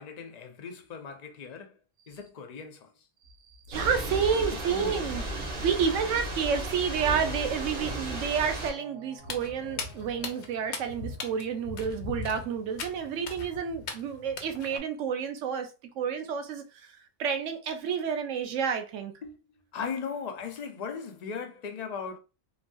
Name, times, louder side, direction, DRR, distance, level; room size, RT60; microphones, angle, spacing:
voice 1, 0.0-1.8 2.1-2.9 4.7-5.3 19.2-19.4 19.7-22.2, left 5 dB, 50° left, 0.5 m, -38 dB
Thunder / Rain, 3.7-8.7, right 1 dB, 50° right, 0.9 m, -34 dB
voice 2, 3.7-5.2 5.6-15.7 16.0-16.6 17.2-19.1, right 7 dB, 90° right, 0.9 m, -30 dB
sound 1, 6.7-11.6, right 3 dB, 75° right, 1.5 m, -50 dB
Walk footsteps, 9.2-14.8, left 4 dB, 70° left, 0.9 m, -39 dB
3.1 x 2.5 x 2.2 m
omnidirectional pair, 1.3 m